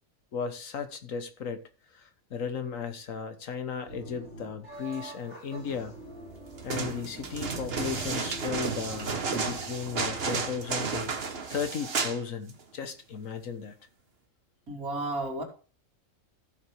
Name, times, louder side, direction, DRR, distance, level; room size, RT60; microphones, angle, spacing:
voice 1, 0.3-1.6 1.9-5.9 6.6-11.1 11.5-13.7, left 6 dB, 65° left, 1.5 m, -35 dB
sound 1, 3.8-10.3, right 2 dB, 50° left, 4.7 m, -45 dB
sound 2, 6.6-12.2 12.5-12.6, right 4 dB, 45° right, 1.4 m, -32 dB
voice 2, 14.7-15.4, right 2 dB, 80° right, 3.5 m, -32 dB
14.5 x 7.1 x 3.4 m
omnidirectional pair, 1.5 m